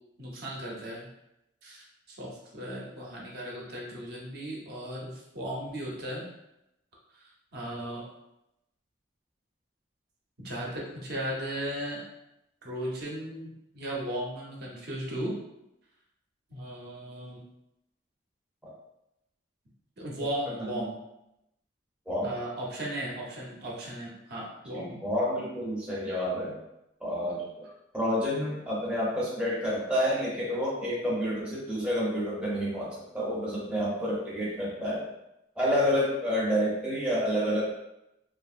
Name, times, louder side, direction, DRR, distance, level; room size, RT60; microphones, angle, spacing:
voice 1, 0.2-1.1 1.6-6.2 7.1-8.0 10.4-12.0 12.6-15.4 16.5-17.4 20.0-21.0 22.2-24.9, right 1 dB, 55° right, -3 dB, 0.7 m, -36 dB
voice 2, 24.7-26.6 27.0-27.6 27.9-35.1 35.6-37.7, equal, 5° right, -7 dB, 0.6 m, -29 dB
2.8 x 2.5 x 2.4 m, 0.86 s
head